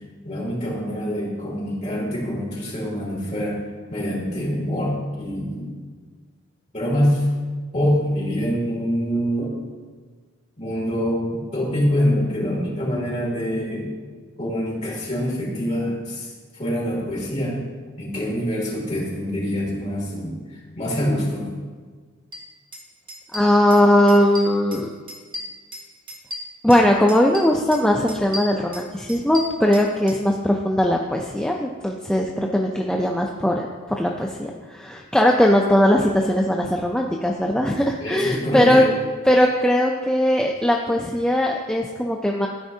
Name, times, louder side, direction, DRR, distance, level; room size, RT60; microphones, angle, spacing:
voice 1, 0.2-3.6 3.9-5.8 6.7-7.3 7.7-9.5 10.6-13.9 14.4-17.6 18.0-21.5 38.0-38.8, equal, 30° left, -5 dB, 2.4 m, -25 dB
sound 1, 22.3-22.4 22.7-22.8 23.1-23.8 24.1-24.8 25.1-26.8 27.1-27.8 28.1-30.2, left 1 dB, 25° right, 1.4 m, -35 dB
voice 2, 23.3-24.9 26.6-33.7 34.0-38.8 39.3-42.5, left 1 dB, 5° left, 0 dB, 0.3 m, -19 dB
13.5 x 5.1 x 2.7 m, 1.5 s
head